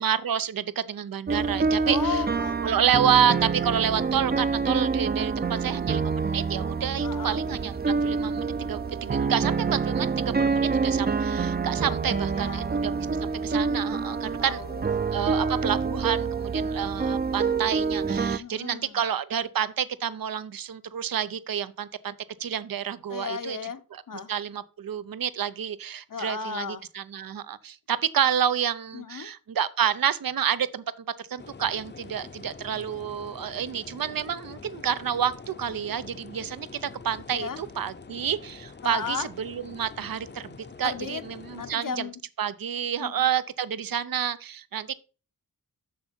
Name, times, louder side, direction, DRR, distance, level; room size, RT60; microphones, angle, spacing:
voice 1, 0.0-2.2 2.6-14.6 15.1-22.1 22.4-23.6 23.9-24.0 24.3-30.8 31.3-41.9 42.4-44.9, right 8 dB, 75° right, 0.7 m, -29 dB
sound 1, 1.3-18.4, right 5 dB, 30° right, 0.5 m, -27 dB
voice 2, 1.8-2.6 7.0-7.4 11.8-12.7 14.4-15.7 17.2-17.8 18.4-18.9 23.1-23.8 24.1-24.3 26.1-26.9 28.9-29.3 37.3-37.6 38.8-39.3 40.8-41.2 41.5-42.1 43.0-43.2, left 6 dB, 65° left, 0.9 m, -35 dB
sound 2, 31.4-41.8, left 4 dB, 30° left, 0.7 m, -45 dB
7.6 x 7.0 x 4.3 m
wide cardioid pair, 100°, 34 cm